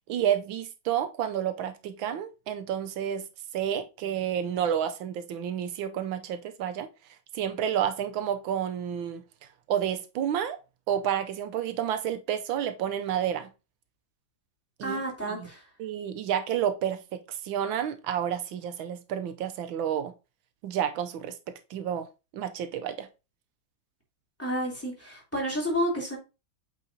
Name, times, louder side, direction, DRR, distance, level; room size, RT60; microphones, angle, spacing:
voice 1, 0.1-3.2 3.5-6.9 7.3-9.2 9.7-10.6 10.9-13.5 14.8-15.5 15.8-20.1 20.6-22.1 22.3-23.1, right 9 dB, 85° right, 1.5 m, -30 dB
voice 2, 14.8-15.6 24.4-26.2, equal, 5° left, 3.0 m, -30 dB
8.2 x 4.8 x 2.7 m
omnidirectional pair, 2.1 m